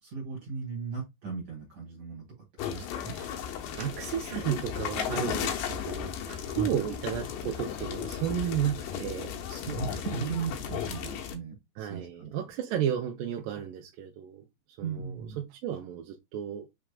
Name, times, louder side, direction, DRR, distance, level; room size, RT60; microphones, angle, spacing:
voice 1, 0.0-2.3 2.5-3.2 6.5-6.8 8.2-8.3 9.5-12.3 14.8-15.4, right 5 dB, 55° right, 2.9 m, -37 dB
sound 1, 2.6-11.3, left 8 dB, 90° left, 2.6 m, -35 dB
voice 2, 3.0-3.4 3.7-9.3 10.1-10.2 11.8-14.4 14.8-16.7, right 9 dB, 90° right, 2.3 m, -33 dB
6.0 x 3.4 x 2.2 m
omnidirectional pair, 3.9 m